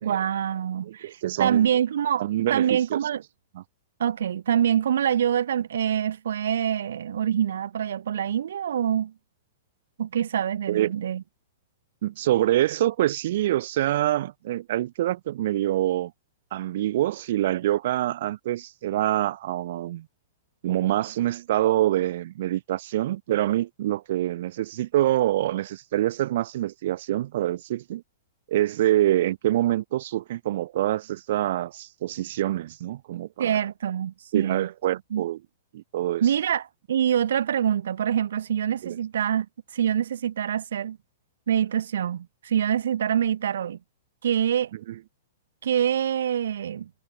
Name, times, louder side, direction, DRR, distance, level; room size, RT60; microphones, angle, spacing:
voice 1, 0.0-1.1 1.4-3.2 4.0-9.1 10.0-11.2 33.4-34.7 35.1-35.2 36.2-39.5 39.7-41.0 41.5-43.8 44.2-44.7 45.6-46.9, right 9 dB, 75° right, 1.1 m, -25 dB
voice 2, 0.8-1.7 2.2-3.0 3.5-3.6 10.7-10.9 12.0-16.1 16.5-20.1 20.6-28.0 28.5-33.6 34.3-35.4 35.7-36.2 38.8-39.0, right 14 dB, 55° right, 0.3 m, -25 dB
hypercardioid pair, 160°, 0 cm